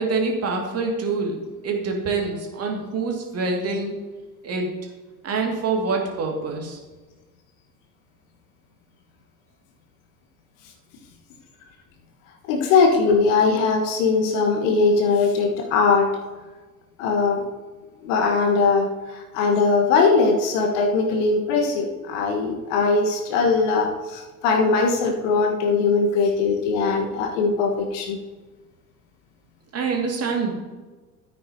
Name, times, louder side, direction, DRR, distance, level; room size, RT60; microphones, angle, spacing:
voice 1, 0.0-1.4 1.6-4.0 4.4-4.7 5.2-6.8 29.7-30.5, right 4 dB, 35° right, 1 dB, 2.2 m, -25 dB
voice 2, 12.4-16.2 17.0-17.5 18.0-28.2, left 4 dB, 55° left, 4 dB, 1.5 m, -20 dB
12.5 x 9.2 x 2.8 m, 1.3 s
figure-of-eight pair, 70°, 45 cm